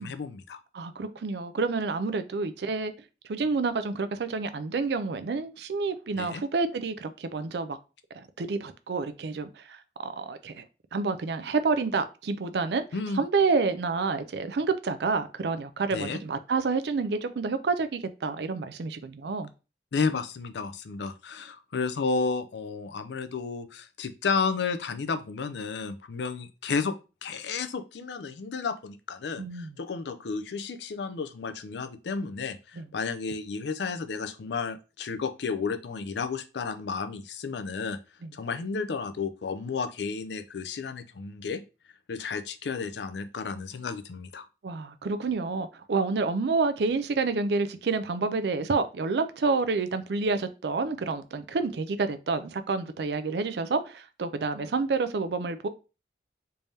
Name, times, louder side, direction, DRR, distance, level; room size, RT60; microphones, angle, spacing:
voice 1, 0.0-0.6 6.1-6.4 12.9-13.2 15.9-16.2 19.9-26.9 27.2-38.0 38.3-41.6 42.1-44.5, left 5 dB, 80° left, 0.5 m, -32 dB
voice 2, 0.7-2.9 3.3-7.8 8.1-10.6 10.9-12.9 13.2-19.5 29.4-29.7 32.8-32.9 44.6-55.7, right 4 dB, 70° right, 0.4 m, -29 dB
3.4 x 2.7 x 3.3 m
head